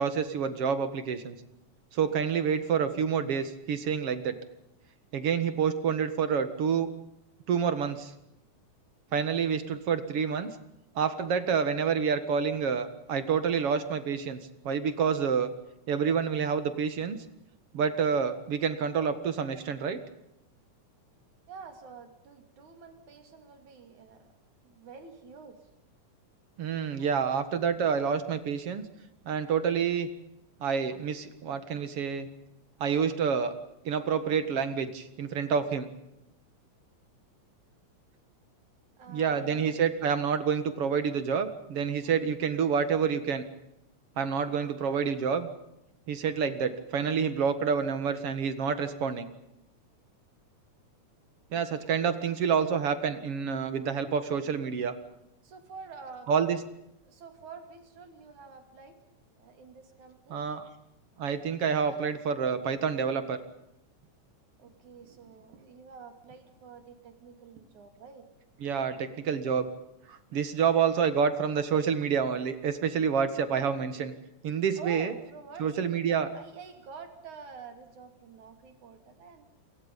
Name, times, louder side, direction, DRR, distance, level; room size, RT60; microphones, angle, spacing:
voice 1, 0.0-1.4 1.9-4.4 5.1-6.9 7.5-8.1 9.1-10.5 11.0-15.5 15.9-17.2 17.7-20.0 26.6-28.8 29.3-30.1 30.6-32.3 32.8-33.5 33.8-35.9 39.1-43.5 44.2-45.5 46.1-49.3 51.5-55.0 56.3-56.6 60.3-60.6 61.2-63.4 68.6-69.7 70.1-74.1 74.4-75.1 75.6-76.3, right 6 dB, 55° right, 11 dB, 2.4 m, -28 dB
voice 2, 21.5-24.3 24.6-25.7 26.9-27.5 39.0-39.8 42.0-42.1 55.4-56.6 57.0-59.0 59.4-60.8 64.6-68.3 68.9-69.0 70.3-70.4 74.8-75.9 76.3-79.5, right 5 dB, 70° right, 7 dB, 4.0 m, -48 dB
28.5 x 22.5 x 5.4 m, 0.83 s
omnidirectional pair, 3.5 m